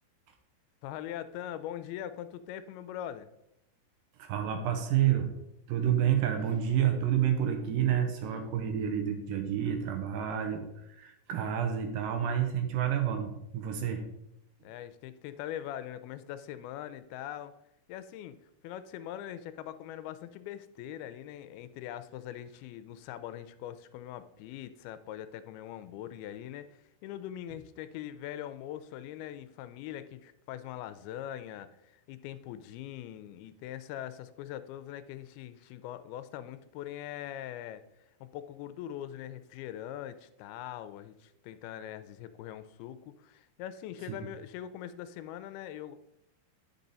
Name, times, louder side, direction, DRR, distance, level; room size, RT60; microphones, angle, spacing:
voice 1, 0.8-3.3 14.6-17.5 17.9-18.4 18.6-37.8 38.2-46.0, left 11 dB, 85° left, 12 dB, 2.5 m, -42 dB
voice 2, 4.2-5.3 5.7-14.0, right 9 dB, 75° right, 6 dB, 2.4 m, -29 dB
10.5 x 5.5 x 4.0 m, 0.83 s
omnidirectional pair, 4.4 m